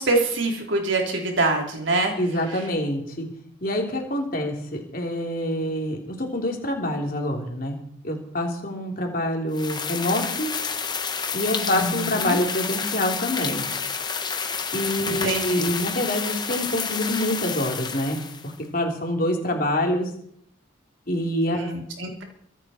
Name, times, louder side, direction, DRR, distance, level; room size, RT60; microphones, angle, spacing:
voice 1, 0.0-2.1 11.6-12.4 15.0-15.7 21.6-22.2, right 2 dB, 80° right, 1 dB, 3.5 m, -25 dB
voice 2, 2.2-3.3 3.6-7.8 8.0-10.5 11.3-13.7 14.7-20.1 21.1-21.7, left 1 dB, 45° left, 2 dB, 3.3 m, -26 dB
sound 1, 9.5-18.5, left 6 dB, 20° left, 1.1 m, -29 dB
24.5 x 9.4 x 4.4 m, 0.70 s
head